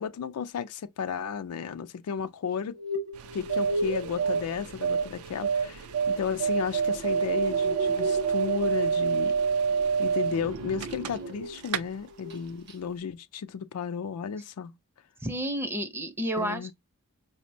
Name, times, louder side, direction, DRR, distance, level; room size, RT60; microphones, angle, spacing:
voice 1, 0.0-2.7 3.3-9.3 10.0-14.7 16.4-16.7, left 6 dB, 90° left, 0.4 m, -33 dB
sound 1, 2.6-11.8 12.1-12.4 12.7-12.8, equal, 50° right, 0.7 m, -38 dB
sound 2, 3.2-11.4 11.7-11.8, right 6 dB, 70° right, 0.3 m, -27 dB
voice 2, 15.2-16.7, right 1 dB, 10° right, 0.4 m, -31 dB
5.0 x 2.1 x 2.6 m
head